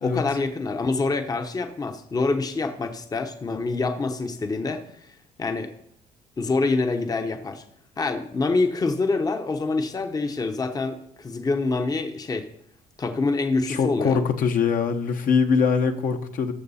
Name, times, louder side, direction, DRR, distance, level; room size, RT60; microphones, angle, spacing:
voice 1, 0.0-5.7 6.4-7.6 8.0-12.5 13.0-14.2, left 3 dB, 20° left, 7 dB, 0.8 m, -26 dB
voice 2, 13.7-16.5, left 6 dB, 55° left, 6 dB, 1.0 m, -22 dB
14.0 x 6.0 x 4.2 m, 0.68 s
cardioid pair, 110°, 17 cm